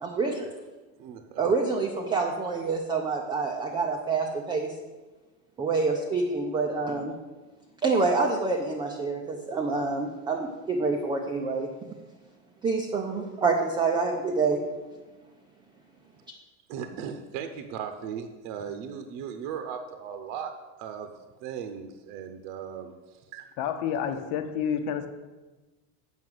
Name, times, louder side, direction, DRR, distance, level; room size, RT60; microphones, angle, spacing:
voice 1, 0.0-0.5 1.4-4.7 5.6-7.1 7.8-11.7 12.6-14.6, right 4 dB, 15° right, 0 dB, 0.4 m, -27 dB
voice 2, 1.0-1.5 16.7-21.1 21.4-23.5, right 7 dB, 65° right, 7 dB, 0.8 m, -37 dB
voice 3, 23.6-25.1, left 8 dB, 75° left, 9 dB, 1.1 m, -29 dB
7.4 x 5.8 x 7.8 m, 1.2 s
cardioid pair, 175°, 37 cm